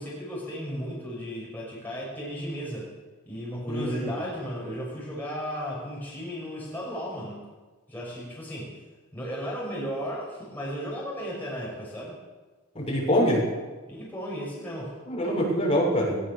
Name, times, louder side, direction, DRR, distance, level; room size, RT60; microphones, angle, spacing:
voice 1, 0.0-2.9 3.3-7.4 7.9-8.7 9.1-12.2 13.9-14.9, equal, 10° left, -5 dB, 6.2 m, -35 dB
voice 2, 3.6-4.2 12.8-13.4 15.1-16.2, equal, 30° left, -3 dB, 7.1 m, -24 dB
20.0 x 20.0 x 6.9 m, 1.3 s
head